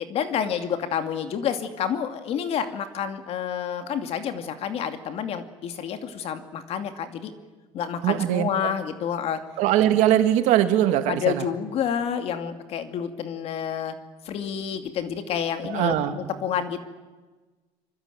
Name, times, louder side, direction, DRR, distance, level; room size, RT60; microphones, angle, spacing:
voice 1, 0.0-7.3 7.7-9.4 11.1-13.9 14.2-16.8, left 8 dB, 55° left, 8 dB, 2.6 m, -29 dB
voice 2, 8.0-8.7 9.6-11.5 15.7-16.2, right 12 dB, 75° right, 7 dB, 2.7 m, -21 dB
25.0 x 24.5 x 9.3 m, 1.3 s
cardioid pair, 130°, 12 cm